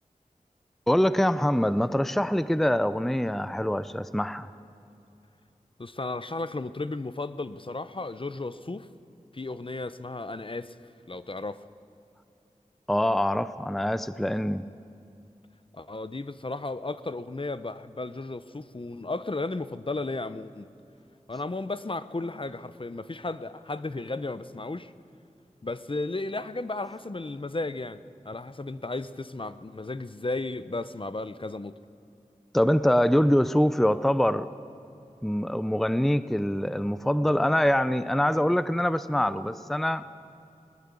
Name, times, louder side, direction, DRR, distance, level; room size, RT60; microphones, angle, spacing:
voice 1, 0.9-4.5 12.9-14.6 32.5-34.5 35.2-40.0, equal, ahead, 14 dB, 0.6 m, -24 dB
voice 2, 5.8-8.9 9.3-10.8 11.1-11.7 15.7-20.7 21.3-24.9 25.6-31.7, left 2 dB, 40° left, 14 dB, 0.8 m, -34 dB
21.0 x 19.0 x 8.4 m, 2.7 s
wide cardioid pair, 50°, 14 cm